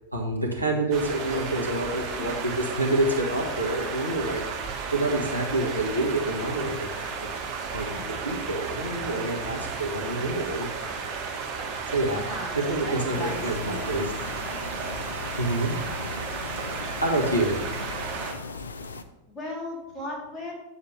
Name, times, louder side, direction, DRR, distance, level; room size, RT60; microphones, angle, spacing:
voice 1, 0.1-4.4 4.9-6.9 7.2-7.3 7.7-7.9 8.2-10.7 11.9-12.2 12.5-14.1 15.4-15.8 17.0-17.6, right 2 dB, 85° right, -2 dB, 1.6 m, -27 dB
sound 1, 0.9-18.3, right 5 dB, 40° right, 1.6 m, -33 dB
voice 2, 7.8-8.2 12.1-13.9 14.5-14.6 19.3-20.5, left 1 dB, 15° left, -4 dB, 3.4 m, -37 dB
sound 2, 13.1-19.0, left 4 dB, 70° left, 0.6 m, -38 dB
9.8 x 7.3 x 3.3 m, 1.0 s
figure-of-eight pair, 90°, 0 cm